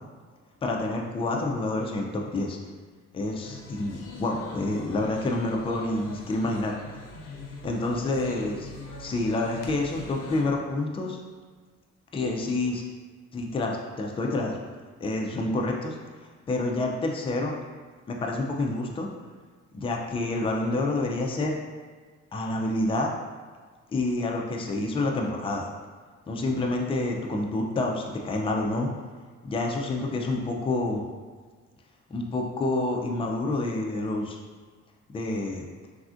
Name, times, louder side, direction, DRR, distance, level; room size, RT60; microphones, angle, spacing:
voice 1, 0.6-2.6 3.1-6.8 7.6-8.7 9.0-11.2 12.1-12.8 13.3-14.6 15.0-16.0 16.5-17.6 18.1-19.1 19.7-21.6 22.3-23.1 23.9-25.7 26.3-28.9 29.4-31.0 32.1-34.4 35.1-35.6, left 2 dB, 20° left, 0 dB, 0.4 m, -28 dB
sound 1, 3.4-10.4, left 2 dB, 90° left, 0.5 m, -42 dB
3.3 x 2.4 x 2.4 m, 1.5 s
cardioid pair, 90°, 30 cm